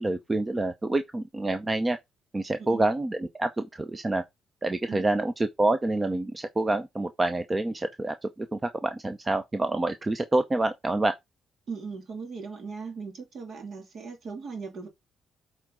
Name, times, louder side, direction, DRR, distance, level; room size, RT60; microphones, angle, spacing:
voice 1, 0.0-2.0 2.3-4.2 4.6-11.1, right 2 dB, 20° right, 0.7 m, -27 dB
voice 2, 11.7-14.9, right 5 dB, 55° right, 2.7 m, -38 dB
7.7 x 4.4 x 3.8 m
cardioid pair, 90°, 0 cm